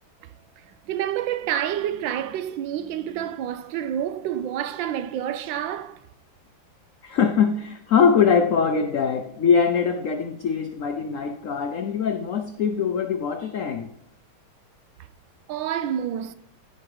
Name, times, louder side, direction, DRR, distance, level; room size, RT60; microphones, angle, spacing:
voice 1, 0.6-6.0 15.5-16.3, right 10 dB, 75° right, 1.2 m, -28 dB
voice 2, 7.0-13.9, left 6 dB, 90° left, 0.7 m, -22 dB
16.0 x 5.5 x 4.9 m
omnidirectional pair, 2.2 m